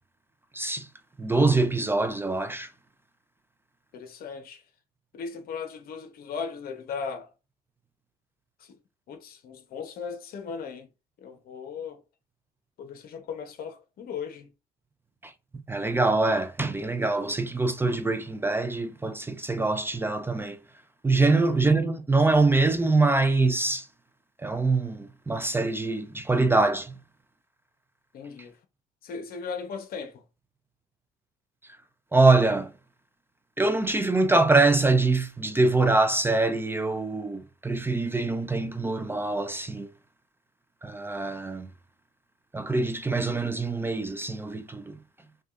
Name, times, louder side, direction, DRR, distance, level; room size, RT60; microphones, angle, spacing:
voice 1, 0.5-0.9 1.2-2.7 15.2-15.3 15.7-20.6 21.0-23.8 24.4-26.9 32.1-32.7 33.6-39.9 40.8-41.7 42.5-45.0, right 3 dB, 15° right, 0.4 m, -24 dB
voice 2, 3.9-4.6 5.1-7.3 8.6-8.8 9.1-10.9 11.2-12.0 12.8-14.5 21.2-21.5 28.1-28.6 29.0-30.2, left 6 dB, 60° left, 1.0 m, -37 dB
6.1 x 2.4 x 2.5 m
cardioid pair, 110°, 17 cm